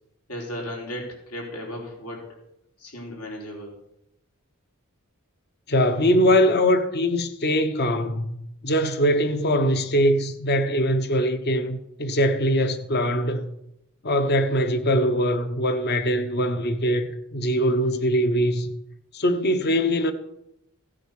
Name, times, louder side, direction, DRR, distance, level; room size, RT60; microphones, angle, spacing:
voice 1, 0.3-2.4 2.8-3.8, left 1 dB, 75° left, 4.2 m, -35 dB
voice 2, 5.7-8.3 8.6-13.5 14.0-18.7 19.1-20.1, equal, 45° left, 1.1 m, -22 dB
16.5 x 9.0 x 6.6 m
head